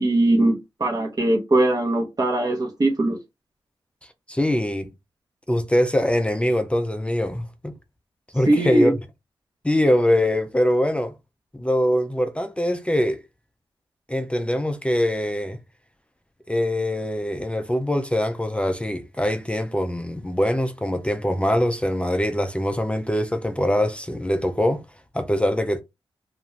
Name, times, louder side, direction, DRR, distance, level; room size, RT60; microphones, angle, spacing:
voice 1, 0.0-3.2 8.5-8.9, right 1 dB, 40° right, 0.9 m, -20 dB
voice 2, 4.3-4.9 5.5-7.7 8.3-9.0 9.6-11.1 11.5-13.2 14.1-15.6 16.5-24.8 25.1-25.8, left 1 dB, 10° left, 0.5 m, -23 dB
2.5 x 2.2 x 3.1 m
cardioid pair, 50°, 10 cm